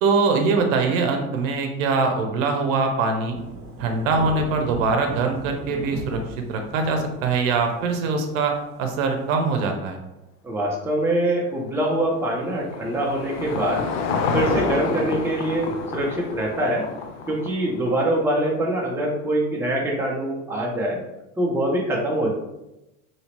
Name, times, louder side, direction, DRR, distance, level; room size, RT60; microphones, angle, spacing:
voice 1, 0.0-3.4 3.8-6.2 6.5-10.0, right 4 dB, 65° right, 4 dB, 0.8 m, -23 dB
Thunder / Rain, 3.3-9.7, right 1 dB, 30° right, 0.9 m, -37 dB
voice 2, 10.4-13.8 14.3-16.9 17.3-21.0 21.4-22.3, right 1 dB, 5° right, -2 dB, 0.6 m, -24 dB
Car passing by / Engine, 11.6-18.1, left 4 dB, 55° left, 0.6 m, -29 dB
3.0 x 2.8 x 2.9 m, 0.93 s
hypercardioid pair, 95°, 42 cm